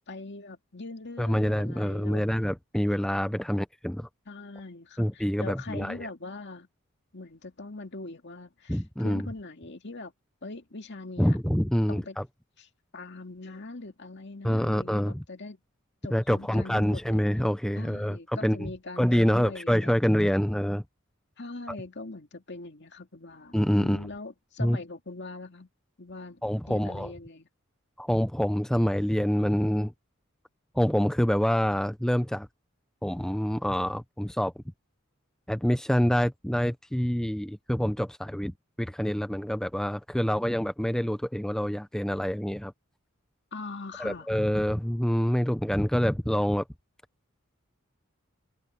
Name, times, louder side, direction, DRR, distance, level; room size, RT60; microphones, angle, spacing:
voice 1, 0.1-2.3 3.2-3.3 4.3-6.7 7.1-10.1 10.4-11.4 11.9-12.2 12.6-12.7 12.9-15.6 16.0-17.2 17.8-20.5 21.4-25.7 26.0-26.4 26.7-27.5 43.5-44.3, left 3 dB, 55° left, 2.5 m, -42 dB
voice 2, 1.2-4.1 5.0-6.1 8.7-9.3 11.2-12.2 14.4-15.2 16.1-18.7 19.0-20.8 21.7-21.8 23.5-24.1 24.6-24.8 26.4-27.1 28.0-29.9 30.7-32.5 33.0-34.5 35.5-42.7 44.0-46.6, equal, 5° left, 0.5 m, -26 dB
head